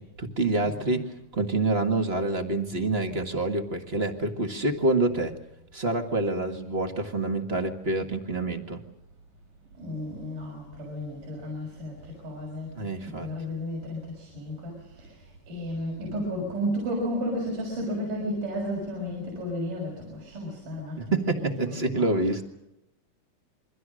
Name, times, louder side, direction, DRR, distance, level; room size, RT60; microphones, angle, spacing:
voice 1, 0.0-5.3 5.7-8.8 12.8-13.3 21.0-22.4, right 2 dB, 30° right, 5 dB, 1.3 m, -27 dB
voice 2, 0.6-1.0 9.8-12.8 13.0-22.4, equal, 75° right, -3 dB, 7.8 m, -33 dB
28.0 x 23.5 x 6.4 m, 0.87 s
omnidirectional pair, 3.7 m